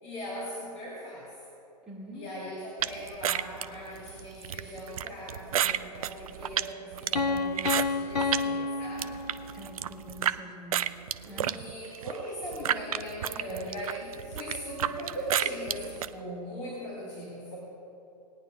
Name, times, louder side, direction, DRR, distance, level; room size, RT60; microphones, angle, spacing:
voice 1, 0.0-1.3 2.1-9.2 11.2-17.6, equal, 35° left, -6 dB, 3.0 m, -39 dB
voice 2, 1.9-2.4 9.5-11.0 11.3-11.6, right 1 dB, 5° right, -8 dB, 2.8 m, -45 dB
sound 1, 2.8-8.5 8.8-10.4 10.7-16.1, right 10 dB, 60° right, 0.5 m, -31 dB
Piano, 7.1-9.9, left 4 dB, 80° left, 1.0 m, -30 dB
20.0 x 10.5 x 2.6 m, 2.9 s
figure-of-eight pair, 115°, 21 cm